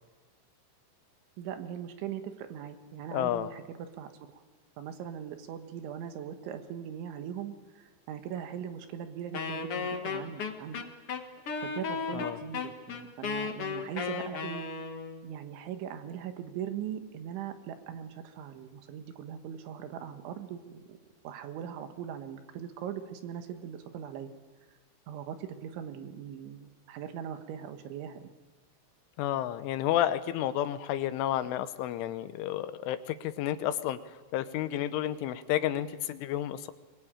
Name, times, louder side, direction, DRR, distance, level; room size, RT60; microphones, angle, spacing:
voice 1, 1.4-4.4 4.8-10.8 11.6-14.7 15.2-21.0 21.2-24.3 25.1-28.3, right 9 dB, 75° right, 7 dB, 3.7 m, -40 dB
voice 2, 3.1-3.5 12.1-12.4 29.2-34.0 34.3-36.7, left 12 dB, 80° left, 11 dB, 3.4 m, -31 dB
Wind instrument woodwind instrument, 9.3-15.2, left 5 dB, 65° left, 1.4 m, -35 dB
24.0 x 21.5 x 8.9 m, 1.3 s
omnidirectional pair, 5.6 m